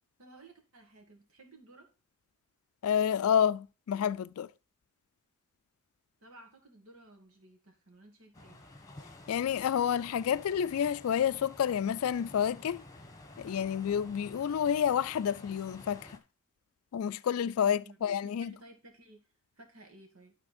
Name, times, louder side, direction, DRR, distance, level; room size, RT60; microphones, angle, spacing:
voice 1, 0.2-1.9 6.2-8.6 17.6-19.2 19.6-20.4, right 2 dB, 85° right, 2.4 m, -56 dB
voice 2, 2.8-4.5 9.3-12.8 13.4-16.2 16.9-18.5, left 8 dB, 85° left, 0.4 m, -29 dB
sound 1, 8.3-16.2, left 2 dB, 15° left, 1.3 m, -51 dB
12.5 x 4.3 x 4.2 m
head